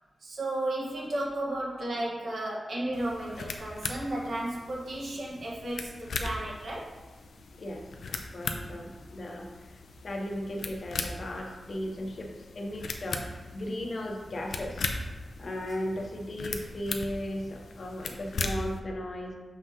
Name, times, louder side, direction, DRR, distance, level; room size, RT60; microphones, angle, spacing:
voice 1, 0.2-7.0 15.4-15.6, right 1 dB, 60° right, -4 dB, 1.5 m, -34 dB
sound 1, 2.9-18.8, left 3 dB, 90° left, 0.6 m, -39 dB
voice 2, 7.6-9.5 10.0-14.9 15.4-19.3, left 1 dB, 45° left, 2 dB, 0.9 m, -36 dB
6.7 x 5.7 x 3.0 m, 1.2 s
wide cardioid pair, 160°, 0 cm